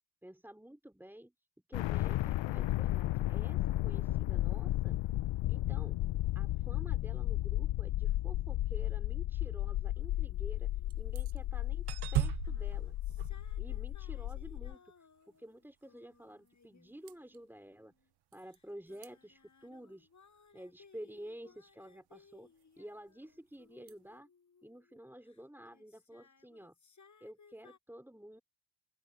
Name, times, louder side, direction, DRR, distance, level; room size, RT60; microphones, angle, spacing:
voice 1, 0.2-1.3 1.7-5.0 5.5-6.0 6.3-10.7 10.9-13.0 13.6-17.9 18.3-20.1 20.5-24.3 24.6-26.8 27.2-28.4, right 1 dB, 5° right, 4.4 m, -51 dB
sound 1, 1.7-14.7, left 15 dB, 75° left, 0.5 m, -34 dB
sound 2, 10.0-11.6 12.3-17.9 18.5-25.4 25.7-27.8, left 5 dB, 40° left, 4.8 m, -64 dB
sound 3, 10.9-11.4 11.9-14.3 17.1-17.4 18.3-18.6 18.9-19.1 23.9-24.0, right 14 dB, 60° right, 0.5 m, -38 dB
open air
wide cardioid pair, 140°, 45 cm